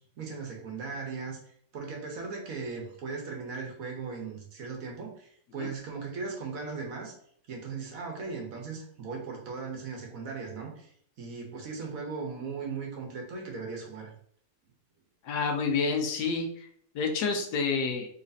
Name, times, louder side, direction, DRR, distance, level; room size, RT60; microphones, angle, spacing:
voice 1, 0.2-1.4 1.7-7.1 7.5-14.1, right 4 dB, 65° right, 0 dB, 1.4 m, -38 dB
voice 2, 15.2-16.7 16.9-18.1, left 4 dB, 85° left, 3 dB, 1.3 m, -28 dB
4.0 x 3.2 x 2.6 m, 0.64 s
omnidirectional pair, 1.7 m